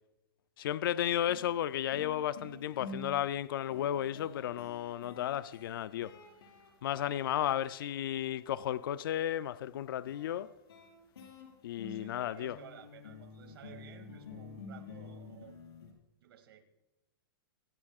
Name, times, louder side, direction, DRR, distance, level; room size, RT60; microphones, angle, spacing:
voice 1, 0.6-6.1 6.8-10.5 11.6-12.6, left 11 dB, 65° left, 0.4 m, -33 dB
sound 1, 0.8-0.9 1.3-8.5 10.1-15.9, left 3 dB, 90° left, 5.1 m, -50 dB
voice 2, 11.8-15.6 16.2-16.6, right 9 dB, 75° right, 2.3 m, -54 dB
24.0 x 11.0 x 2.4 m
hypercardioid pair, 165°, 13 cm